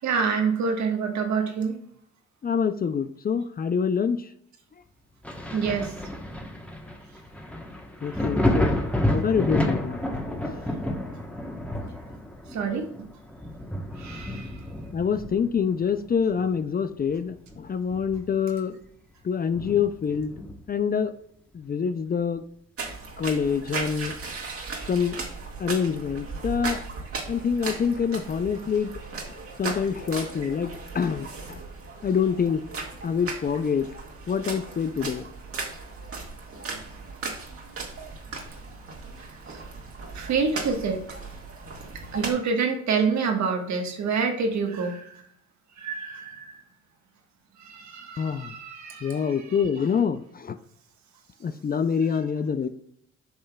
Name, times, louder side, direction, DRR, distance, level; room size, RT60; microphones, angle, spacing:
voice 1, 0.0-1.7 5.5-5.9 12.5-12.9 13.9-14.5 40.1-41.0 42.1-45.2 45.8-46.5 47.6-49.4, right 5 dB, 65° right, 4 dB, 1.4 m, -27 dB
voice 2, 2.4-4.2 8.0-8.8 9.1-10.0 10.5-10.6 14.9-18.8 19.2-20.3 20.7-21.1 21.5-22.4 23.2-24.1 24.9-25.2 25.6-26.8 27.3-28.9 29.2-31.6 32.0-32.6 33.0-33.9 34.3-35.3 48.2-48.6 49.0-50.6 51.4-52.7, left 6 dB, 30° left, 11 dB, 0.4 m, -26 dB
Thunder, 5.2-16.6 17.0-18.5 18.8-18.9 19.5-20.8 22.2-22.3, left 1 dB, 5° left, 1.1 m, -30 dB
sound 1, 22.8-42.3, right 3 dB, 50° right, 1.7 m, -37 dB
8.7 x 5.4 x 2.3 m, 0.69 s
cardioid pair, 90°, 30 cm